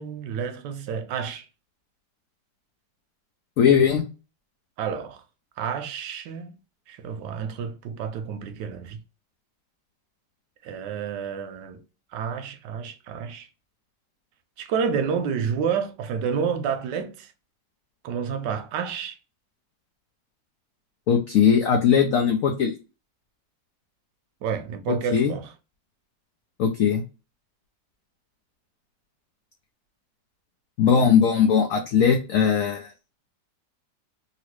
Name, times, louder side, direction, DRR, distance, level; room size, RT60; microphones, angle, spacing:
voice 1, 0.0-1.4 4.8-5.2 5.6-6.5 6.9-9.0 10.6-11.8 12.1-13.5 14.6-17.3 18.0-19.2 24.4-25.5, right 6 dB, 75° right, 1.1 m, -29 dB
voice 2, 3.6-4.0 21.1-22.7 24.9-25.3 26.6-27.0 30.8-32.9, left 7 dB, 85° left, 0.7 m, -19 dB
2.9 x 2.8 x 3.0 m
omnidirectional pair, 2.0 m